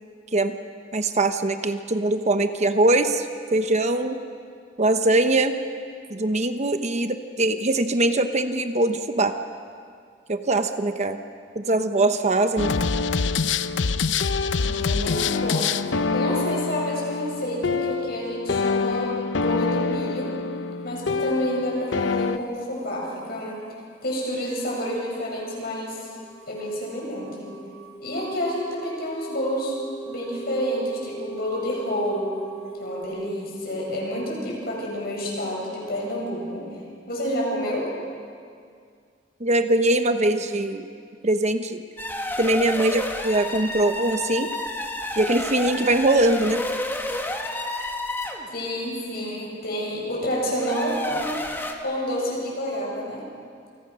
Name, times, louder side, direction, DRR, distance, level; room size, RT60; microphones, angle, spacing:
voice 1, 0.9-4.2 4.8-5.6 6.1-9.4 10.3-11.2 11.5-12.7 39.4-40.9 41.2-41.8 42.4-44.5 45.2-46.6, right 2 dB, 35° right, 8 dB, 1.0 m, -22 dB
sound 1, 12.6-22.4, left 4 dB, 75° left, 0.7 m, -25 dB
voice 2, 14.6-20.3 20.8-23.6 24.0-26.1 26.5-27.5 28.0-29.7 30.1-32.4 32.8-36.7 37.1-37.9 48.5-51.4 51.8-53.2, equal, 55° left, -2 dB, 8.0 m, -29 dB
sound 2, 24.7-33.0, right 3 dB, 35° left, 2.1 m, -40 dB
sound 3, 42.0-48.5 50.5-51.7, left 1 dB, 10° left, 1.9 m, -30 dB
28.5 x 24.5 x 6.3 m, 2.2 s
head